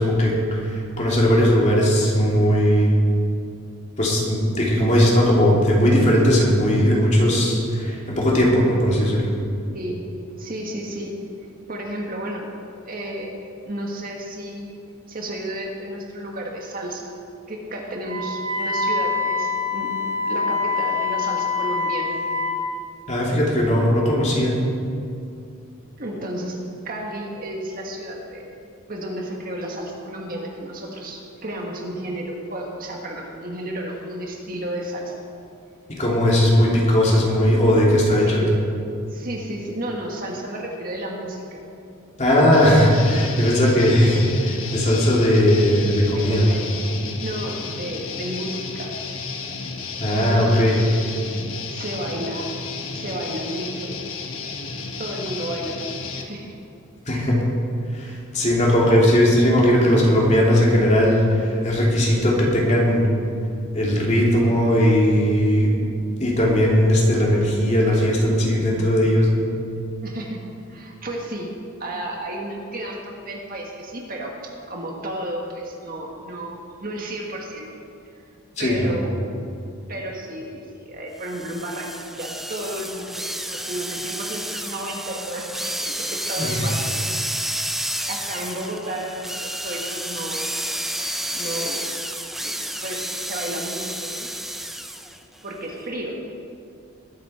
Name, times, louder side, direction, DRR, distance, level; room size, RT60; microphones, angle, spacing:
voice 1, 0.0-2.9 4.0-9.3 23.1-24.5 36.0-38.4 42.2-46.4 50.0-50.8 57.1-57.4 57.9-63.1 63.7-65.7 66.2-69.4 78.6-78.9 86.4-86.6, equal, 35° left, -4 dB, 2.8 m, -18 dB
voice 2, 9.7-10.1 10.4-11.2 11.7-12.5 12.9-14.7 15.1-17.2 17.5-22.2 26.0-28.5 28.9-35.2 38.3-38.5 39.1-41.6 46.1-46.7 47.2-49.0 50.1-50.7 51.1-51.2 51.7-52.5 52.9-54.0 55.0-56.5 70.0-77.7 78.6-79.2 79.9-87.1 88.1-90.5 91.3-91.8 92.4-94.3 95.4-96.2, right 1 dB, 45° right, 0 dB, 1.7 m, -32 dB
Wind instrument woodwind instrument, 18.0-22.6, left 4 dB, 75° right, 1.9 m, -25 dB
Guitar, 42.5-56.2, left 4 dB, 75° left, 1.3 m, -33 dB
sound 1, 81.2-95.2, right 1 dB, ahead, 0.4 m, -30 dB
21.0 x 8.6 x 4.4 m, 2.5 s
head